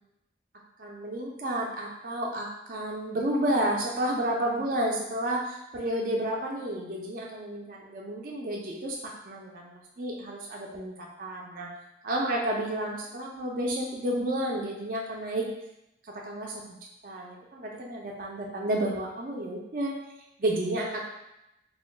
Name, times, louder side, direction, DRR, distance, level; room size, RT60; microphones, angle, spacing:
voice 1, 0.8-11.7 12.0-15.5 16.2-16.8 17.0-19.9 20.4-21.0, right 1 dB, 50° right, -2 dB, 0.4 m, -31 dB
2.3 x 2.2 x 3.8 m, 0.87 s
head